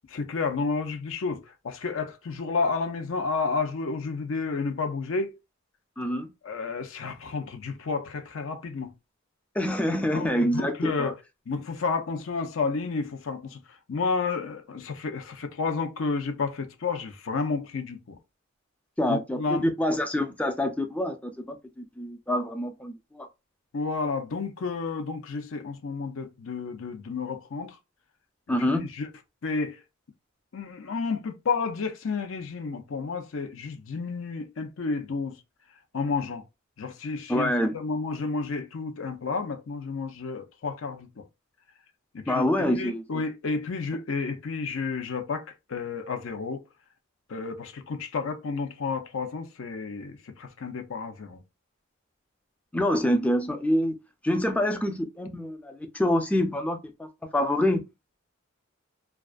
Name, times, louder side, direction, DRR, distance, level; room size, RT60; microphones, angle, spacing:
voice 1, 0.1-5.4 6.4-8.9 10.1-11.2 11.5-13.6 13.9-18.2 19.0-19.6 23.7-27.8 28.7-29.1 29.4-29.8 30.5-35.4 35.9-36.4 36.8-41.2 42.1-42.4 42.7-45.4 45.7-46.6 47.3-51.4, left 4 dB, 75° left, 0.6 m, -31 dB
voice 2, 6.0-6.3 9.6-11.1 19.0-21.2 21.5-23.3 28.5-28.9 37.3-37.8 42.3-43.2 52.7-53.9 54.2-57.8, left 1 dB, 5° left, 0.3 m, -26 dB
2.3 x 2.3 x 2.4 m
head